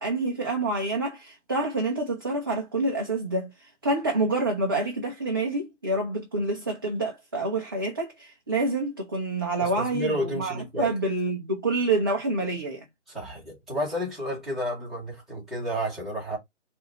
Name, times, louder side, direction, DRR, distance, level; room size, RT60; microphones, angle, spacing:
voice 1, 0.0-12.8, right 2 dB, 20° right, 0.5 m, -27 dB
voice 2, 9.6-10.9 13.1-16.4, equal, ahead, 1.2 m, -31 dB
4.6 x 2.6 x 4.0 m
figure-of-eight pair, 145°, 37 cm